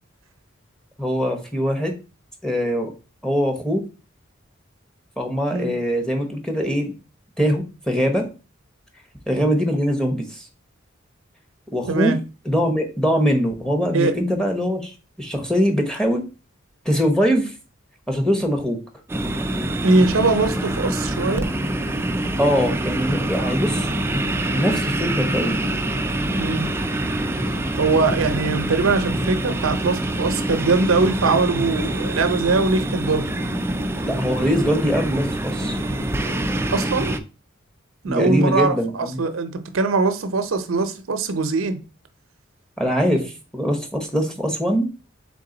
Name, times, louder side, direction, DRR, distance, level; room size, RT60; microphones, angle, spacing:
voice 1, 1.0-1.9 2.4-2.9 3.2-3.8 5.2-6.9 7.4-8.3 9.3-10.4 11.7-12.2 12.5-14.9 15.2-16.3 16.8-17.5 18.1-18.8 22.4-23.9 24.5-25.6 34.0-35.8 38.0-39.2 42.8-44.9, equal, 5° left, 0.8 m, -22 dB
voice 2, 11.9-12.2 13.9-14.1 19.8-21.5 26.4-26.7 27.8-33.2 36.7-37.2 38.0-41.8, right 3 dB, 85° right, 0.6 m, -21 dB
sound 1, 19.1-37.2, right 1 dB, 10° right, 0.3 m, -25 dB
3.8 x 3.7 x 3.8 m
head